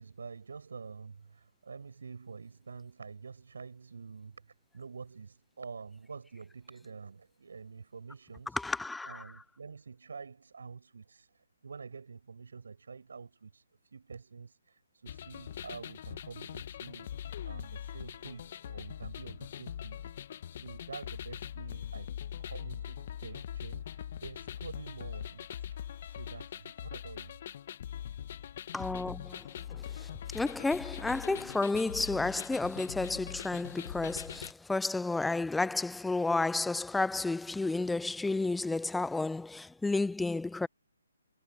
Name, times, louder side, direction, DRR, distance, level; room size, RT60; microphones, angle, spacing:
voice 1, 0.0-8.6 9.1-13.6 13.9-17.1 17.4-20.1 20.5-22.1 22.4-27.4, right 5 dB, 70° right, 7.3 m, -47 dB
voice 2, 8.5-9.4 28.7-40.7, left 3 dB, 5° left, 0.4 m, -32 dB
sound 1, 15.1-34.5, left 10 dB, 45° left, 1.0 m, -42 dB
hypercardioid pair, 145°, 0 cm